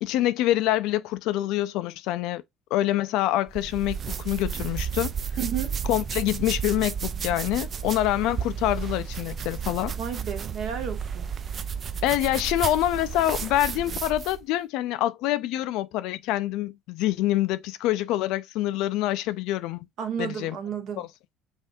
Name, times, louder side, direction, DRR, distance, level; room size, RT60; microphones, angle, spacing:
voice 1, 0.0-2.4 2.7-5.1 5.9-9.9 12.0-19.9 20.2-20.6 21.0-21.1, left 14 dB, 70° left, 0.4 m, -26 dB
sound 1, 3.5-14.4, right 7 dB, 40° right, 0.4 m, -32 dB
voice 2, 5.4-5.7 10.0-11.3 20.0-21.0, right 8 dB, 60° right, 1.3 m, -32 dB
5.6 x 2.6 x 2.6 m
supercardioid pair, 95°, 0 cm